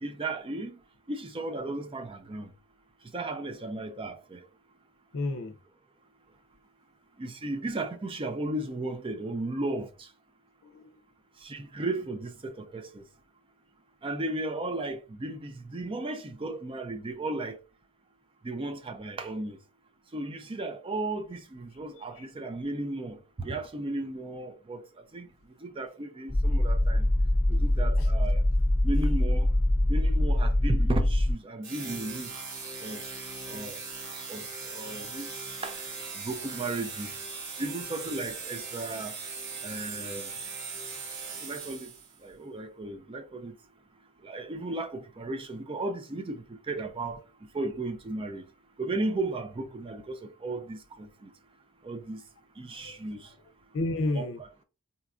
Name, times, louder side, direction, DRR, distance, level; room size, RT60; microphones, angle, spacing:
voice 1, 0.0-0.8 1.1-2.5 3.1-4.4 7.2-10.1 11.4-13.0 14.0-17.6 18.4-19.6 20.1-24.9 25.1-25.3 25.6-27.1 27.5-28.4 28.8-29.5 29.9-32.3 32.8-33.0 33.5-33.8 34.3-35.8 36.2-37.1 37.6-39.1 39.6-40.3 41.4-41.9 42.2-43.5 44.2-47.2 47.5-48.4 48.8-51.3 51.8-52.2 52.6-53.3 54.1-54.6, right 2 dB, 25° right, 0.5 m, -35 dB
voice 2, 5.1-5.6 10.6-11.0 22.2-22.3 27.9-28.1 52.7-53.0 53.7-54.4, left 2 dB, 65° left, 0.5 m, -32 dB
sound 1, 26.3-31.3, left 1 dB, 15° left, 0.8 m, -24 dB
sound 2, 31.6-42.2, right 4 dB, 55° right, 0.9 m, -39 dB
4.0 x 2.3 x 2.4 m
head